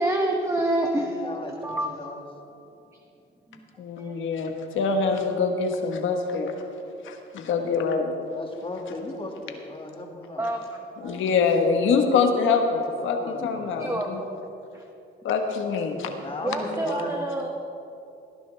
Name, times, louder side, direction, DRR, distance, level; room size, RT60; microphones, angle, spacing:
voice 1, 0.0-2.1 3.5-3.6 4.0-4.1 10.4-11.2 13.8-14.4 14.7-14.8 16.4-17.5, right 1 dB, 15° right, 2 dB, 0.9 m, -28 dB
voice 2, 0.9-2.3 8.3-10.5 12.9-13.9 16.2-17.1, left 2 dB, 25° left, 1 dB, 2.0 m, -36 dB
voice 3, 3.8-6.5 7.0-8.1 11.0-14.2 15.2-16.1, left 5 dB, 75° left, 4 dB, 1.4 m, -24 dB
18.0 x 10.5 x 3.4 m, 2.8 s
cardioid pair, 90°, 20 cm